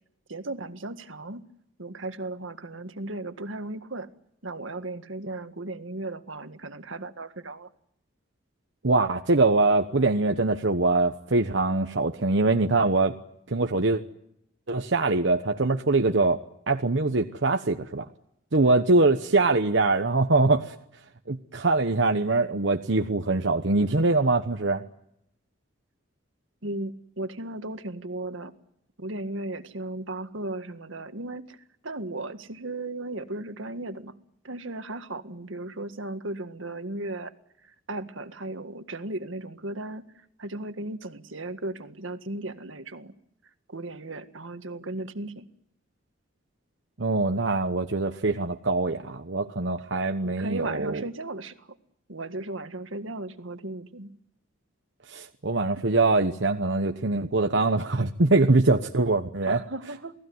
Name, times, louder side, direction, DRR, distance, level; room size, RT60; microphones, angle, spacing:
voice 1, 0.3-1.5 1.8-4.1 4.4-7.7 26.6-28.5 29.0-31.6 31.8-34.2 34.4-37.3 37.7-40.1 40.4-43.1 43.7-45.5 50.2-51.8 52.1-54.2 59.4-60.1, right 2 dB, 85° right, 9 dB, 1.8 m, -36 dB
voice 2, 8.8-13.1 13.5-14.0 14.7-16.4 16.7-18.0 18.5-20.7 21.3-24.8 47.0-51.0 55.1-59.6, right 3 dB, 65° right, 5 dB, 1.1 m, -23 dB
28.5 x 19.0 x 9.5 m, 0.77 s
head